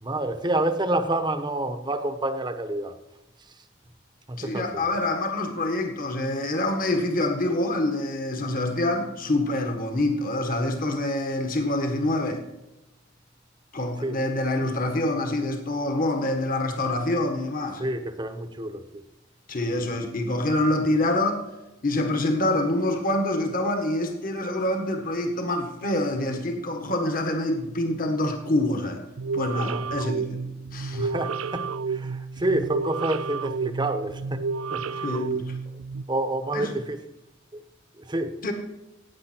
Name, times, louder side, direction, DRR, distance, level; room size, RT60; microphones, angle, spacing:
voice 1, 0.0-3.0 4.3-4.8 14.0-14.2 17.8-19.0 29.5-29.9 30.9-34.4 34.7-35.2 36.1-37.0 37.5-37.6 38.0-38.4, right 1 dB, 20° right, 1.0 m, -28 dB
voice 2, 4.4-12.4 13.7-17.8 19.5-21.4 21.8-29.0 29.3-31.1 35.0-35.6 36.5-36.7 38.4-38.5, left 1 dB, 45° left, 1.7 m, -26 dB
sound 1, 29.2-36.1, right 5 dB, 80° right, 0.5 m, -31 dB
16.0 x 9.3 x 4.5 m
head